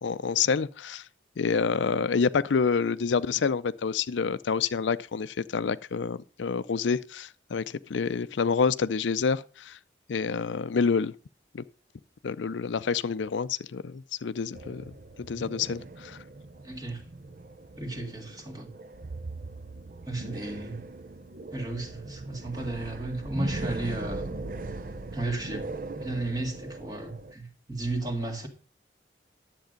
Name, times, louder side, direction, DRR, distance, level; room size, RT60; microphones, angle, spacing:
voice 1, 0.0-1.0 1.4-9.8 10.1-11.1 11.5-11.6 12.2-14.9 15.2-16.2, left 5 dB, 90° left, 0.5 m, -28 dB
sound 1, 14.5-27.3, right 2 dB, 50° right, 0.6 m, -39 dB
voice 2, 16.6-17.1 17.8-18.7 20.1-20.8 21.5-24.4 25.1-25.7 25.9-28.5, right 2 dB, 20° right, 1.8 m, -34 dB
10.5 x 7.7 x 5.1 m
head